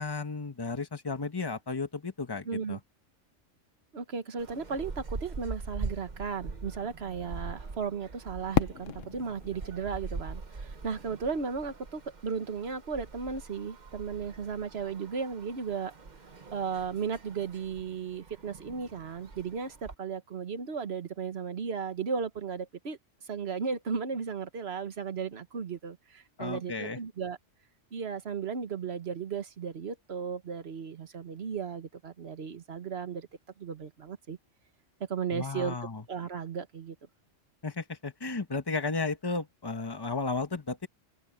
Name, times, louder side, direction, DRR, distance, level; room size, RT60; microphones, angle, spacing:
voice 1, 0.0-2.8 26.4-27.0 35.3-36.0 37.6-40.9, left 3 dB, 20° left, 1.3 m, -34 dB
voice 2, 2.4-2.8 3.9-15.9 16.5-23.0 23.2-27.4 27.9-33.3 33.6-34.4 35.1-35.8 36.1-37.0, right 6 dB, 55° right, 1.5 m, -35 dB
sound 1, 4.4-20.0, right 3 dB, 40° right, 1.2 m, -43 dB
Fireworks, 8.5-11.4, left 9 dB, 85° left, 1.2 m, -34 dB
open air
omnidirectional pair, 1.3 m